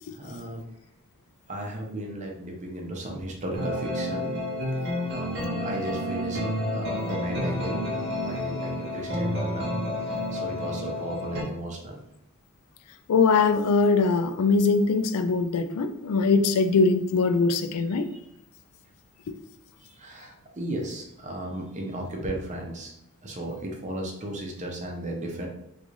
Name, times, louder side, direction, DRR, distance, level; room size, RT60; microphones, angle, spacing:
voice 1, 0.1-0.6 1.5-4.4 4.7-9.7 10.0-12.0 18.1-18.2 19.8-22.9 23.2-25.5, right 1 dB, 35° right, 1 dB, 0.7 m, -35 dB
sound 1, 3.5-11.4, left 1 dB, 50° right, 1.0 m, -30 dB
voice 2, 13.1-18.1, left 4 dB, 85° left, 9 dB, 0.4 m, -22 dB
3.8 x 2.4 x 3.1 m, 0.77 s
head